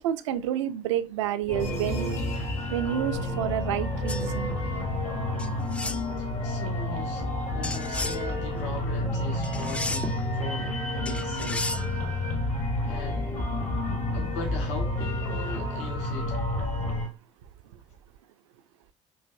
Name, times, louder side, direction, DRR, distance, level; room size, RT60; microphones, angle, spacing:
voice 1, 0.0-2.2 2.7-4.5, right 11 dB, 70° right, 0.4 m, -29 dB
sound 1, 1.5-17.1, left 1 dB, 45° left, 1.3 m, -30 dB
sound 2, 4.1-4.3 5.4-6.0 7.6-8.2 9.4-10.2 11.1-11.9, left 2 dB, 5° left, 0.3 m, -33 dB
voice 2, 6.2-12.0 12.9-13.3 14.1-16.4, left 3 dB, 70° left, 1.0 m, -39 dB
5.4 x 2.5 x 2.5 m
figure-of-eight pair, 50°, 16 cm